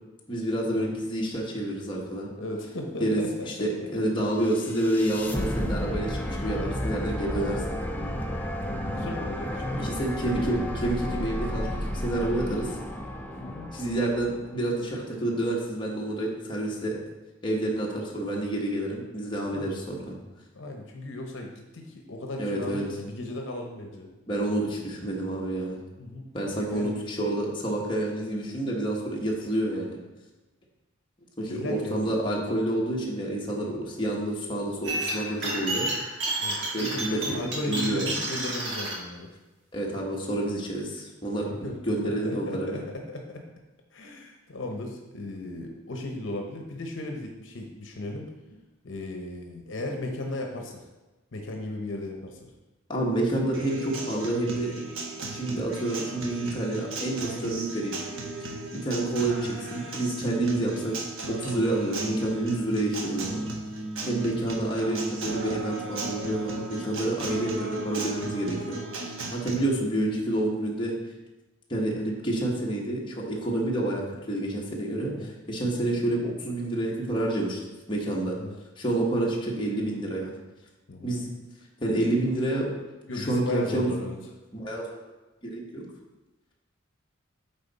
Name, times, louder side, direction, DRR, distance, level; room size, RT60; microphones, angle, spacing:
voice 1, 0.3-2.3 3.0-7.6 9.8-12.7 13.7-17.0 17.4-20.1 22.4-22.9 24.3-25.8 26.3-30.0 31.4-35.9 36.7-37.4 37.7-38.0 39.7-41.5 41.9-42.8 52.9-54.7 55.3-58.0 58.7-60.9 61.3-63.4 64.1-68.8 69.3-70.9 71.7-77.6 77.9-78.3 78.8-80.3 81.0-81.3 81.8-82.7 83.2-84.0 84.5-84.8 85.4-85.9, right 1 dB, 25° left, -3 dB, 1.2 m, -28 dB
voice 2, 2.4-4.0 7.3-7.7 8.6-9.9 10.3-10.5 13.3-13.7 19.5-19.8 20.5-24.1 26.0-26.3 26.7-27.0 31.4-32.5 36.4-39.3 41.6-43.4 43.9-48.3 48.8-50.8 51.3-52.5 53.4-53.5 60.5-60.7 69.5-69.7 75.1-75.3 78.4-78.6 80.9-81.2 83.1-84.2, left 2 dB, 70° left, 2 dB, 0.8 m, -36 dB
sound 1, 4.4-14.6, equal, 10° left, 0.4 m, -32 dB
sound 2, 34.8-38.9, right 2 dB, 60° right, 1.5 m, -31 dB
Acoustic guitar, 53.5-69.5, right 2 dB, 80° right, 1.1 m, -35 dB
9.0 x 3.9 x 4.1 m, 1.1 s
head